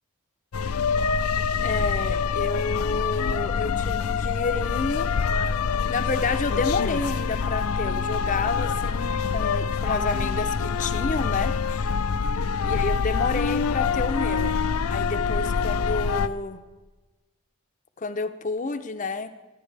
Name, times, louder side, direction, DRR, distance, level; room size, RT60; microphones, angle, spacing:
sound 1, 0.5-16.3, left 5 dB, 80° left, 0.5 m, -25 dB
voice 1, 1.5-5.1 5.9-11.6 12.6-14.6 14.9-16.6 18.0-19.3, left 3 dB, 35° left, 9 dB, 0.6 m, -29 dB
24.5 x 9.7 x 3.3 m, 1.2 s
head